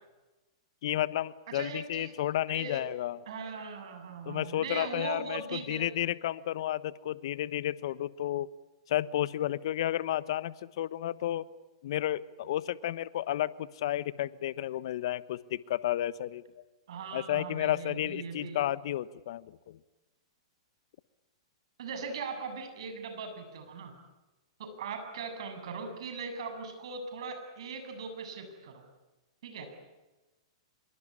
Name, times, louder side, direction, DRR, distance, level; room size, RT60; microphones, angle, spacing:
voice 1, 0.8-3.2 4.3-8.5 8.9-11.4 11.8-16.4 17.1-19.8, left 13 dB, 60° left, 17 dB, 1.1 m, -32 dB
voice 2, 1.5-2.2 2.5-2.8 3.3-5.9 16.9-18.6 21.8-23.9 24.6-28.8 29.4-29.7, right 5 dB, 65° right, 7 dB, 7.7 m, -40 dB
26.0 x 23.0 x 9.9 m, 1.1 s
hypercardioid pair, 115°, 3 cm